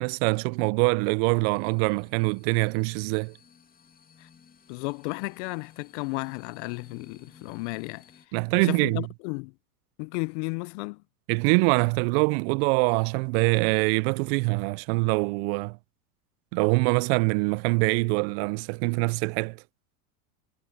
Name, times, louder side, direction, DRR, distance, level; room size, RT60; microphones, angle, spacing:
voice 1, 0.0-3.3 8.3-9.0 11.3-15.8 16.5-19.6, right 31 dB, 45° right, 0.4 m, -24 dB
sound 1, 1.2-8.3, left 6 dB, 20° left, 2.2 m, -56 dB
voice 2, 4.7-8.0 8.5-9.5 10.0-11.0, left 30 dB, 55° left, 0.6 m, -33 dB
hypercardioid pair, 100°, 44 cm